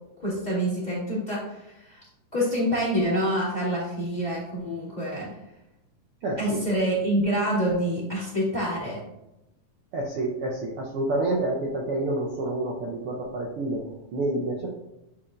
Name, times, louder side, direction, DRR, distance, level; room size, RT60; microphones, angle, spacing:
voice 1, 0.2-2.0 2.3-5.3 6.4-9.0, equal, 15° left, -6 dB, 1.7 m, -27 dB
voice 2, 6.2-6.6 9.9-14.8, right 2 dB, 85° right, -2 dB, 1.2 m, -28 dB
8.4 x 4.3 x 2.5 m, 0.89 s
omnidirectional pair, 3.6 m